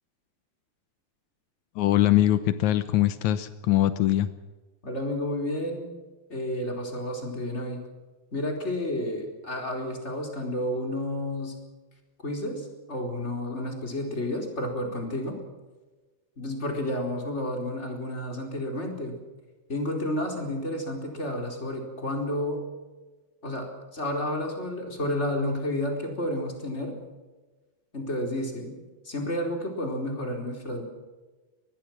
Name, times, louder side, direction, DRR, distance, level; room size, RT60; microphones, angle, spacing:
voice 1, 1.7-4.3, left 13 dB, 85° left, 12 dB, 1.6 m, -22 dB
voice 2, 4.8-5.8 6.3-7.8 8.3-11.5 12.2-15.4 16.4-19.2 19.7-22.6 23.4-27.0 27.9-28.8 29.0-30.8, left 1 dB, 15° left, 2 dB, 4.2 m, -31 dB
24.0 x 20.0 x 6.2 m, 1.2 s
omnidirectional pair, 4.5 m